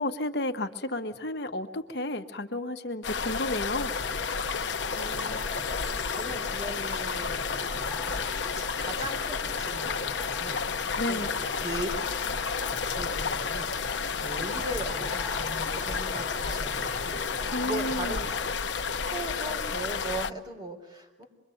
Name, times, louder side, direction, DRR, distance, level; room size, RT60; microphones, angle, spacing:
voice 1, 0.0-3.9 11.0-11.3 17.5-18.3, left 1 dB, 65° left, 7 dB, 1.2 m, -32 dB
sound 1, 3.0-20.3, left 5 dB, 85° left, 0.8 m, -31 dB
sound 2, 3.8-18.5, left 1 dB, 10° right, 2.8 m, -44 dB
voice 2, 4.9-11.3 11.6-11.9 12.9-18.2 18.7-21.3, right 1 dB, 25° right, 1 dB, 4.2 m, -40 dB
25.5 x 22.5 x 7.9 m, 1.2 s
head